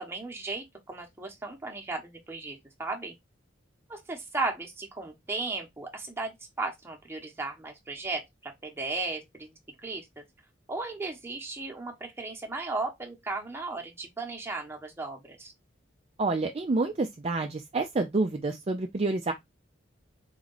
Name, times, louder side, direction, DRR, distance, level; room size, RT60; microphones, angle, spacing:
voice 1, 0.0-3.1 3.9-10.2 10.7-15.5, right 3 dB, 15° right, 1.1 m, -36 dB
voice 2, 16.2-19.3, right 3 dB, 30° right, 0.4 m, -28 dB
3.9 x 3.2 x 3.8 m
head